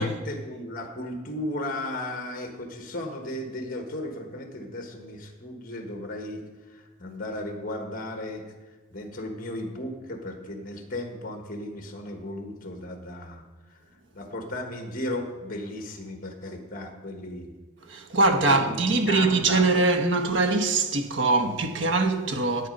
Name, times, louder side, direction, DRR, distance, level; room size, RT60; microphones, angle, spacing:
voice 1, 0.0-6.4 6.7-8.4 8.9-13.4 13.7-13.8 14.1-17.5 18.4-19.7, left 1 dB, 40° left, 1.3 m, -35 dB
voice 2, 17.9-22.7, right 3 dB, 60° right, 1.0 m, -23 dB
11.0 x 8.4 x 5.3 m
head